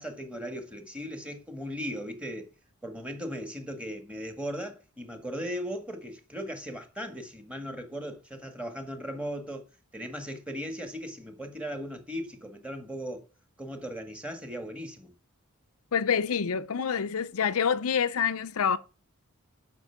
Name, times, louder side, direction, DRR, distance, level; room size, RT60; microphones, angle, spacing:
voice 1, 0.0-2.5 2.8-9.6 9.9-13.3 13.6-15.1, equal, 5° right, 1.8 m, -37 dB
voice 2, 15.9-18.8, left 7 dB, 70° left, 0.6 m, -27 dB
11.0 x 5.9 x 5.8 m
head